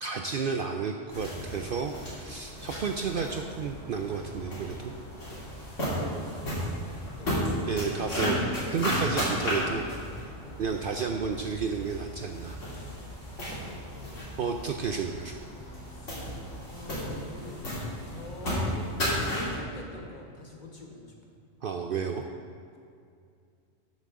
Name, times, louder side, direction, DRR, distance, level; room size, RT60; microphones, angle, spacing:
voice 1, 0.0-4.9 7.7-9.9 10.6-12.6 14.4-15.4 21.6-22.3, right 5 dB, 60° right, 4 dB, 0.6 m, -32 dB
sound 1, 1.1-19.6, equal, 80° left, 3.3 m, -34 dB
voice 2, 5.9-6.7 7.0-7.8 10.4-10.6 13.3-14.4 15.8-17.8 18.1-19.2 19.5-21.4, left 2 dB, 40° left, 0 dB, 1.4 m, -46 dB
12.5 x 7.4 x 3.7 m, 2.3 s
omnidirectional pair, 1.3 m